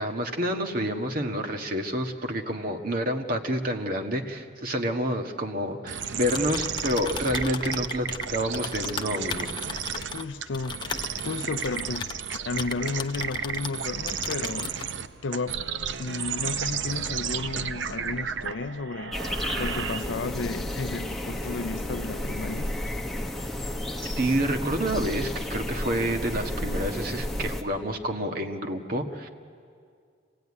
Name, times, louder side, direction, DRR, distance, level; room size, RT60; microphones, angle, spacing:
voice 1, 0.0-9.5 24.0-29.3, equal, 50° right, 1.6 m, -28 dB
sound 1, 5.9-20.4, right 7 dB, 85° right, 0.7 m, -33 dB
Typing, 6.1-13.8 14.1-14.9, left 5 dB, 25° left, 0.6 m, -37 dB
voice 2, 10.1-10.8 11.2-12.1 12.5-14.7 15.2-15.6 16.0-19.2 19.6-22.7, left 3 dB, 80° left, 0.5 m, -33 dB
sound 2, 19.1-27.6, left 1 dB, ahead, 1.2 m, -32 dB
25.0 x 17.5 x 9.7 m
head